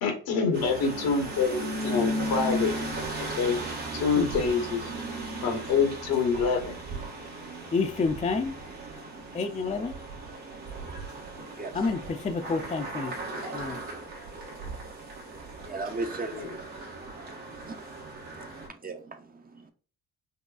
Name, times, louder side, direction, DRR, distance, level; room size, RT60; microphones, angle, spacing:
voice 1, 0.0-2.7 3.2-3.6 3.9-4.9 5.4-6.8 16.3-16.5, left 5 dB, 75° left, 1.2 m, -26 dB
sound 1, 0.5-18.7, right 1 dB, 75° right, 1.5 m, -36 dB
voice 2, 7.7-8.6 9.3-9.9 11.7-13.1 13.5-13.8, left 4 dB, 20° left, 0.5 m, -29 dB
voice 3, 15.6-16.6 17.0-17.1 17.4-17.8 18.4-19.7, right 3 dB, 25° right, 0.6 m, -37 dB
5.3 x 2.3 x 2.3 m
hypercardioid pair, 50°, 37 cm